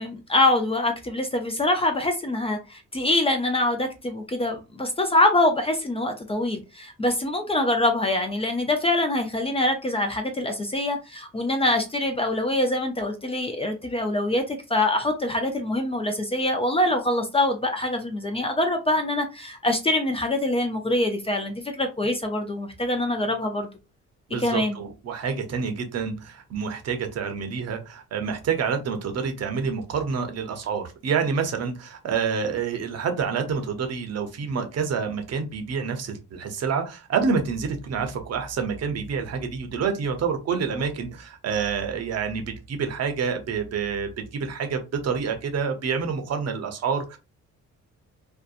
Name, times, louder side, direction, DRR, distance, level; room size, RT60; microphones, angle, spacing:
voice 1, 0.0-23.7 24.4-24.7, left 1 dB, 20° left, 0.4 m, -24 dB
voice 2, 24.3-47.2, right 6 dB, 55° right, 0.7 m, -28 dB
2.7 x 2.2 x 2.4 m
cardioid pair, 90°, 30 cm